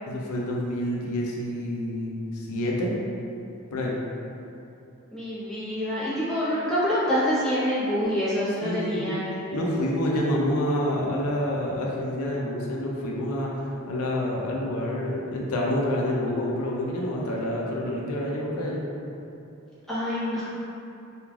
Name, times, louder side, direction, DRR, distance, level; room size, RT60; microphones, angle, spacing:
voice 1, 0.1-2.9 3.7-4.0 8.6-9.0 9.5-13.6 13.9-18.8, left 1 dB, 85° left, -2 dB, 0.4 m, -28 dB
voice 2, 5.1-9.6 19.9-20.4, equal, ahead, -13 dB, 0.8 m, -26 dB
3.1 x 2.4 x 2.3 m, 2.7 s
head